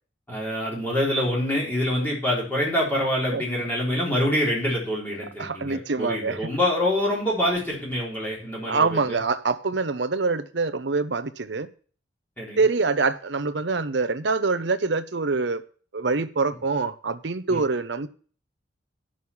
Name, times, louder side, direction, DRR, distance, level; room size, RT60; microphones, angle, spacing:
voice 1, 0.3-9.2 12.4-12.6 17.5-17.6, left 1 dB, 10° left, 3.8 m, -26 dB
voice 2, 5.4-6.5 8.7-11.7 12.6-15.6 15.9-18.1, right 4 dB, 65° right, 0.7 m, -25 dB
9.4 x 6.4 x 7.1 m
head